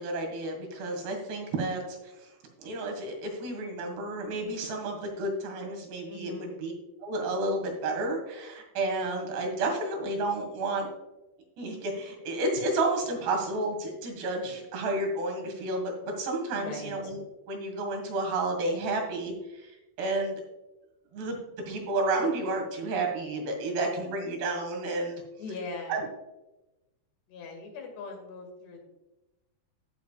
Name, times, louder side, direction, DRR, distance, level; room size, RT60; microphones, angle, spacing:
voice 1, 0.0-2.0 2.6-6.7 7.0-10.9 11.6-20.4 21.1-21.4 21.7-25.2 25.9-26.1, right 2 dB, 85° right, 2 dB, 4.1 m, -31 dB
voice 2, 6.1-6.6 16.5-17.1 25.4-26.0 27.3-28.8, left 3 dB, 90° left, 2 dB, 4.3 m, -40 dB
15.0 x 7.1 x 2.4 m, 0.99 s
omnidirectional pair, 4.6 m